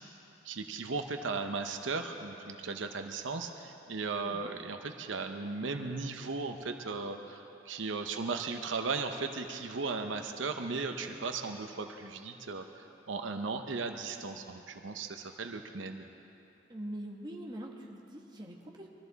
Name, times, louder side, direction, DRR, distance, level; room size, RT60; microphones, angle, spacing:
voice 1, 0.4-16.1, right 4 dB, 90° right, 5 dB, 0.8 m, -36 dB
voice 2, 4.2-4.5 15.2-15.4 16.7-18.9, right 1 dB, 25° right, -1 dB, 1.4 m, -43 dB
22.5 x 13.5 x 4.0 m, 2.9 s
head